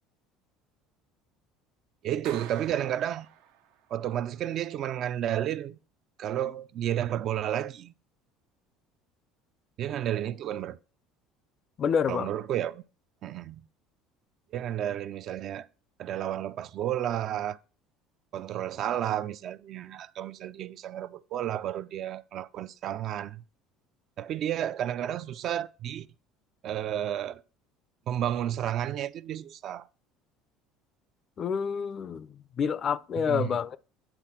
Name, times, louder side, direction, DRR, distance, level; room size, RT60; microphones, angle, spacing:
voice 1, 2.0-3.3 3.9-5.8 6.2-7.9 9.8-10.8 12.1-12.8 13.2-13.6 14.5-15.7 16.0-17.6 18.3-23.4 24.2-26.1 26.6-27.4 28.1-29.9 33.2-33.5, right 11 dB, 50° right, 0.4 m, -31 dB
Clapping, 2.2-3.9, right 10 dB, 85° right, 0.8 m, -47 dB
voice 2, 11.8-12.3 31.4-32.3 32.6-33.8, left 7 dB, 40° left, 0.4 m, -28 dB
9.1 x 4.0 x 5.7 m
cardioid pair, 120°, 0 cm